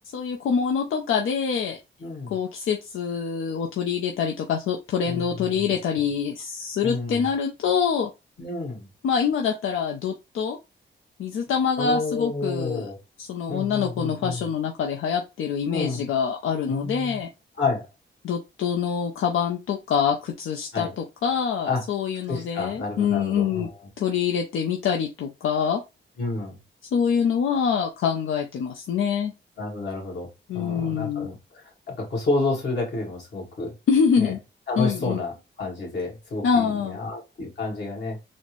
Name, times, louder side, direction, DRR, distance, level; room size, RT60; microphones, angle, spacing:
voice 1, 0.1-1.8 2.3-8.1 9.0-10.6 11.2-12.9 13.2-17.3 18.2-23.7 24.0-25.8 26.9-29.3 30.5-31.3 33.9-34.4 34.8-35.2 36.4-37.0, left 6 dB, 85° left, 0.5 m, -25 dB
voice 2, 2.0-2.3 5.0-5.6 6.8-7.3 8.4-8.9 11.8-13.0 13.5-14.5 15.7-16.0 16.7-17.2 17.6-17.9 20.7-20.9 21.7-21.8 22.3-23.7 26.2-26.6 29.6-33.7 34.2-34.3 34.7-38.2, left 3 dB, 55° left, 1.8 m, -30 dB
4.1 x 2.1 x 3.0 m
cardioid pair, 100°, 20 cm